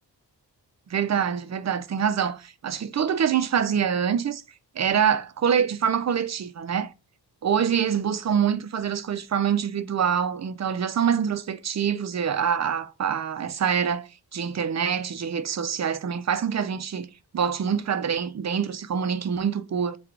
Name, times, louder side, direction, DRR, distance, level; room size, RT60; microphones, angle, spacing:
voice 1, 0.9-4.4 4.8-6.9 7.4-20.0, right 7 dB, 45° right, 0.4 m, -25 dB
4.4 x 2.3 x 3.7 m
wide cardioid pair, 125°, 40 cm